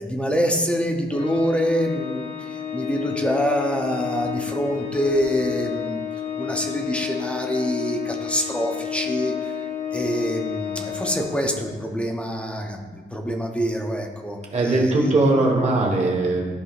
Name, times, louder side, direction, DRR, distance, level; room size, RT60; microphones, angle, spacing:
voice 1, 0.0-6.0 6.4-9.6 9.9-15.1, equal, 5° left, 2 dB, 0.6 m, -25 dB
Organ, 1.1-11.9, left 9 dB, 50° left, 0.7 m, -31 dB
voice 2, 14.5-16.5, right 2 dB, 30° right, -1 dB, 1.3 m, -20 dB
13.5 x 4.8 x 2.4 m, 1.5 s
wide cardioid pair, 175°, 21 cm